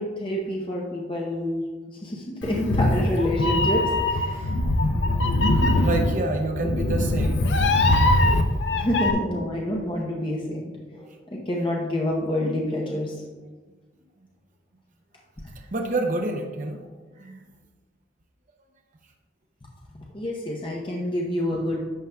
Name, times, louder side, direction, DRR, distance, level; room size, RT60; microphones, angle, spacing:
voice 1, 0.0-4.5 8.7-13.2 20.1-21.8, left 1 dB, 25° left, -2 dB, 0.8 m, -28 dB
Meow, 2.4-9.1, left 2 dB, 65° left, 0.6 m, -22 dB
voice 2, 5.5-7.5 8.1-8.2 15.5-16.9 17.2-17.4, right 2 dB, 40° right, 2 dB, 0.6 m, -28 dB
11.0 x 7.0 x 2.3 m, 1.4 s
head